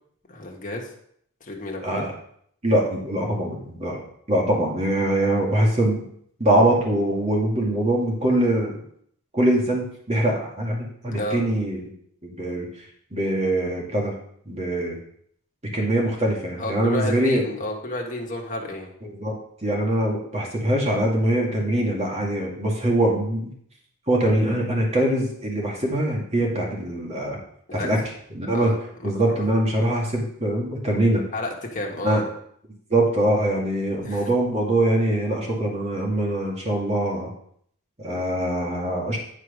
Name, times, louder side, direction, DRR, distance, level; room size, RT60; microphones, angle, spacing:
voice 1, 0.3-0.9 1.4-2.0 11.1-11.4 16.6-18.9 27.7-27.9 28.5-29.5 31.3-32.3 34.0-34.3, left 1 dB, 35° left, 0 dB, 1.5 m, -31 dB
voice 2, 2.6-4.0 4.3-6.0 6.4-8.8 9.3-11.8 12.2-12.7 13.1-14.1 14.5-15.0 15.7-17.4 19.0-23.5 24.1-27.4 27.7-28.0 28.3-28.7 29.0-31.2 32.0-32.2 32.9-37.3 38.0-39.2, right 1 dB, 30° right, -2 dB, 2.1 m, -23 dB
10.0 x 4.9 x 5.2 m, 0.66 s
head